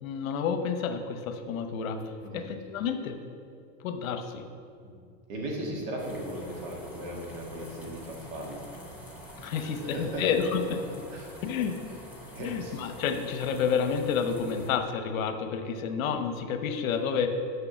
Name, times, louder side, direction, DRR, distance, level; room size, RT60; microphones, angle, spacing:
voice 1, 0.0-3.2 3.8-4.4 9.4-10.8 11.4-11.8 12.4-17.3, left 6 dB, 85° left, 7 dB, 0.9 m, -30 dB
voice 2, 5.3-8.7 9.5-10.2 11.1-11.3 12.3-12.9, right 1 dB, 50° right, -1 dB, 2.0 m, -37 dB
sound 1, 6.0-14.7, equal, 5° right, 0.3 m, -46 dB
6.8 x 5.3 x 7.0 m, 2.3 s
supercardioid pair, 160°, 40 cm